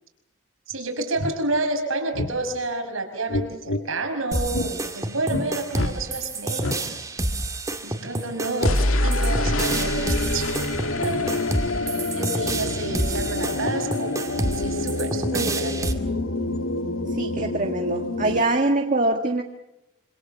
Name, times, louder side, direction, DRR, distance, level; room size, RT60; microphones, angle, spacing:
sound 1, 0.7-0.8 1.2-1.3 2.1-2.3 3.3-3.8 4.5-4.7 5.3-5.5 5.7-5.9 6.6-6.8 8.6-18.4, left 2 dB, 90° left, 2.1 m, -26 dB
voice 1, 0.7-7.0 7.8-10.6 11.0-11.4 12.2-14.1 14.5-15.9, right 2 dB, 90° right, 5 dB, 5.4 m, -30 dB
sound 2, 4.3-15.9, right 1 dB, 15° right, 2.2 m, -28 dB
voice 2, 17.1-19.4, right 2 dB, 40° right, 4 dB, 1.5 m, -24 dB
26.5 x 26.5 x 7.2 m, 0.89 s
head